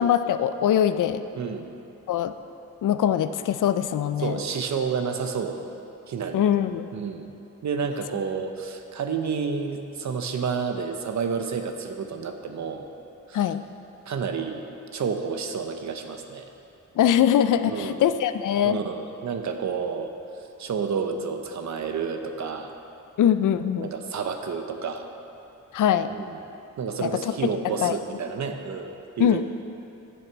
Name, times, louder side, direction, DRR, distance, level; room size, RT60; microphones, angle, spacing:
voice 1, 0.0-1.2 2.1-2.3 2.8-4.4 6.3-6.9 13.3-13.6 17.0-18.8 23.2-23.9 25.7-26.1 27.0-27.1 27.8-28.0 29.2-29.4, left 10 dB, 85° left, 12 dB, 0.5 m, -22 dB
voice 2, 1.3-1.7 4.2-5.6 6.1-6.5 6.9-7.3 7.6-12.8 13.3-13.5 14.1-16.4 17.7-18.0 18.6-20.1 20.6-22.7 23.8-25.1 26.0-26.4 26.8-29.4, right 5 dB, 65° right, 5 dB, 0.9 m, -30 dB
14.5 x 6.4 x 4.6 m, 2.8 s
wide cardioid pair, 120°, 30 cm